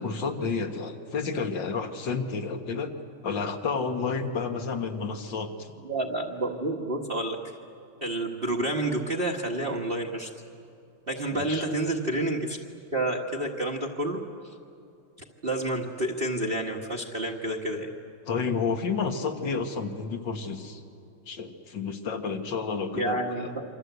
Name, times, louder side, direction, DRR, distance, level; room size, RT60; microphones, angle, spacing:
voice 1, 0.0-2.9 3.2-5.7 11.3-11.7 18.3-20.8 21.3-23.5, left 5 dB, 70° left, 6 dB, 2.3 m, -30 dB
voice 2, 5.8-7.4 8.0-10.3 11.1-12.6 12.9-14.5 15.4-17.9 22.9-23.6, right 1 dB, 30° right, 2 dB, 1.5 m, -29 dB
28.0 x 25.5 x 8.1 m, 2.6 s
omnidirectional pair, 2.1 m